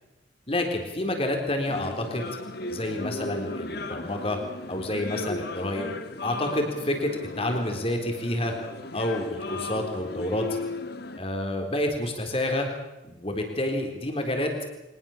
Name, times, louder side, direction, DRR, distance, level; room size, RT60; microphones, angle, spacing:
voice 1, 0.5-2.3 2.7-4.4 4.7-5.9 6.2-8.5 8.9-10.5 11.2-12.7 13.0-14.5, left 1 dB, 30° left, 4 dB, 3.8 m, -28 dB
sound 1, 1.6-11.2, left 2 dB, 60° left, 1.5 m, -36 dB
24.0 x 19.5 x 7.3 m, 1.0 s
head